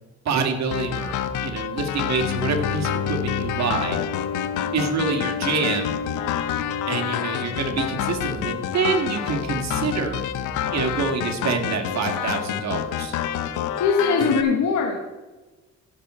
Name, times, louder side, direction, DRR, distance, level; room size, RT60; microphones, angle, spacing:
voice 1, 0.3-1.2 1.4-4.0 4.7-6.0 6.9-10.2 10.7-13.1, right 5 dB, 65° right, 4 dB, 2.0 m, -26 dB
sound 1, 0.7-14.4, left 10 dB, 85° left, 0.8 m, -28 dB
Bowed string instrument, 2.2-9.4, left 6 dB, 50° left, 0.9 m, -32 dB
voice 2, 13.8-15.0, left 5 dB, 70° left, 1 dB, 1.4 m, -21 dB
15.5 x 6.3 x 4.3 m, 1.2 s
cardioid pair, 90°, 30 cm